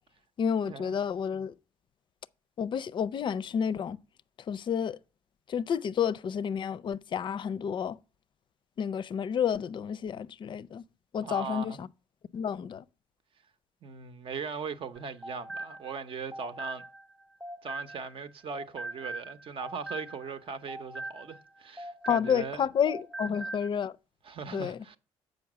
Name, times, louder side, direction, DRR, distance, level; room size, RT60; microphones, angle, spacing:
voice 1, 0.4-1.5 2.6-4.0 4.5-5.0 5.5-8.0 8.8-10.8 11.1-11.9 12.3-12.8 22.1-23.9 24.5-24.8, left 8 dB, 45° left, 0.5 m, -30 dB
voice 2, 11.2-11.8 13.8-16.8 17.6-22.6 23.2-23.4 24.2-25.0, right 5 dB, 50° right, 0.8 m, -39 dB
sound 1, 15.0-18.2 18.5-22.6 22.9-23.7, right 2 dB, 5° right, 0.7 m, -41 dB
7.1 x 5.2 x 6.0 m
supercardioid pair, 75°, 11 cm